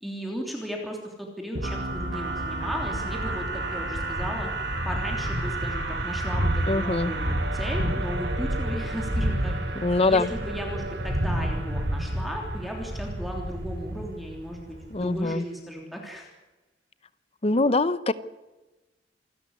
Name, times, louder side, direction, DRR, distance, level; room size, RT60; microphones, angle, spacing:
voice 1, 0.0-4.5 4.8-9.5 10.0-16.3, equal, ahead, 0 dB, 3.3 m, -35 dB
sound 1, 1.5-13.3, right 3 dB, 80° right, 2.6 m, -34 dB
Thunder, 1.9-15.2, equal, 55° right, 6.8 m, -31 dB
voice 2, 6.7-7.1 9.7-10.3 14.9-15.4 17.4-18.1, left 2 dB, 35° left, 15 dB, 0.9 m, -23 dB
28.0 x 12.5 x 9.8 m, 1.1 s
head